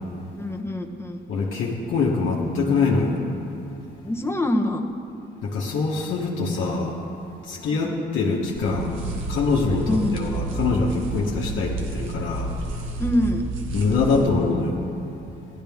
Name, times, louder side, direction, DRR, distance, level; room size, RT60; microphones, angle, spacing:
voice 1, 0.4-1.2 4.0-4.8 7.6-8.0 9.9-10.1 13.0-13.4, left 1 dB, 10° left, 3 dB, 1.0 m, -25 dB
voice 2, 1.3-3.2 5.4-7.0 7.4-9.0 9.3-12.5 13.7-14.8, left 4 dB, 75° left, -4 dB, 1.2 m, -24 dB
sound 1, 8.6-14.3, right 2 dB, 85° right, 1.2 m, -30 dB
15.5 x 11.5 x 3.5 m, 2.7 s
cardioid pair, 90°, 20 cm